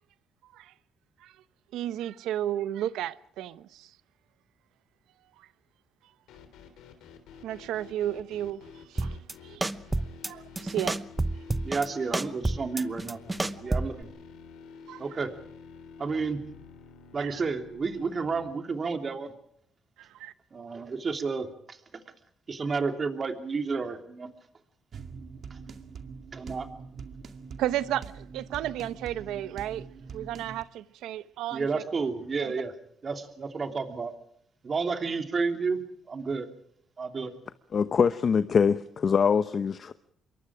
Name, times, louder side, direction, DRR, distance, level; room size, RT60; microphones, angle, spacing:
voice 1, 1.7-3.9 5.4-5.5 7.4-8.6 8.9-9.6 10.3-11.0 14.9-15.0 17.2-17.3 20.0-20.3 27.6-29.8 30.1-31.8 32.4-32.5, right 12 dB, 90° right, 0.9 m, -33 dB
sound 1, 6.3-18.5, left 6 dB, 90° left, 3.4 m, -49 dB
sound 2, 9.0-9.3 9.6-10.3 10.6-11.9 12.1-14.0, right 2 dB, 15° right, 0.9 m, -29 dB
voice 2, 11.6-13.2 13.5-14.1 15.0-15.3 16.0-16.4 17.1-19.3 20.5-22.0 22.5-24.3 25.5-25.6 26.3-26.7 31.5-32.7 33.0-34.1 34.6-35.8 36.1-36.5 37.0-37.4, right 4 dB, 40° right, 3.1 m, -31 dB
sound 3, 24.9-30.6, right 5 dB, 55° right, 2.2 m, -44 dB
voice 3, 37.7-39.9, left 6 dB, 50° left, 0.9 m, -23 dB
27.0 x 23.0 x 5.0 m
cardioid pair, 90°, 0 cm